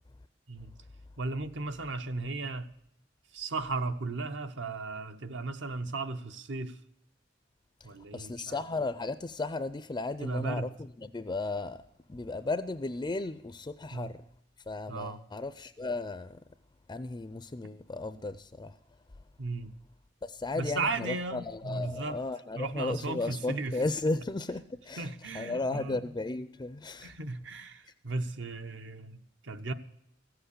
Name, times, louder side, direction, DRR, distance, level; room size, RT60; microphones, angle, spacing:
voice 1, 1.2-2.7 3.3-6.8 7.8-8.6 10.2-10.7 13.9-14.1 14.9-15.2 19.4-19.7 20.5-22.2 22.6-23.8 25.0-26.0 27.0-29.7, right 3 dB, 70° right, 1.0 m, -35 dB
voice 2, 7.8-11.8 12.1-14.2 14.7-16.4 16.9-18.8 20.2-27.1, left 2 dB, 20° left, 0.4 m, -35 dB
15.0 x 8.0 x 8.4 m
head